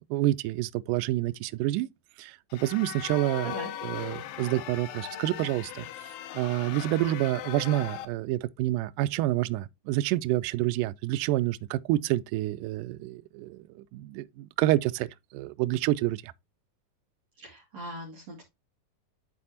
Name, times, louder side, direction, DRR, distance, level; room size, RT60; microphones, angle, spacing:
voice 1, 0.1-1.9 2.2-3.5 3.8-5.9 6.3-16.3, right 16 dB, 85° right, 1.8 m, -28 dB
sound 1, 2.5-8.1, left 11 dB, 80° left, 2.5 m, -39 dB
voice 2, 17.4-18.5, right 2 dB, 50° right, 3.0 m, -40 dB
11.0 x 4.2 x 2.8 m
omnidirectional pair, 4.2 m